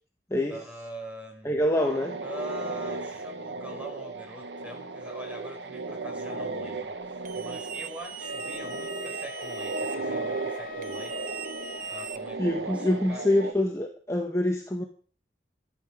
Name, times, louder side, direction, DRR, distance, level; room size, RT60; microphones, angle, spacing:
voice 1, 0.5-1.7 2.2-11.2 11.6-13.3, equal, 10° right, 0 dB, 4.6 m, -44 dB
voice 2, 1.4-2.2 12.4-14.8, left 1 dB, 15° left, 1 dB, 1.4 m, -25 dB
sound 1, 1.7-13.5, right 3 dB, 85° right, 1.1 m, -36 dB
sound 2, 7.3-10.0 10.8-12.6, right 9 dB, 50° right, 1.1 m, -40 dB
Wind instrument woodwind instrument, 8.2-12.1, left 8 dB, 50° left, 0.9 m, -43 dB
15.0 x 12.5 x 5.0 m, 0.42 s
head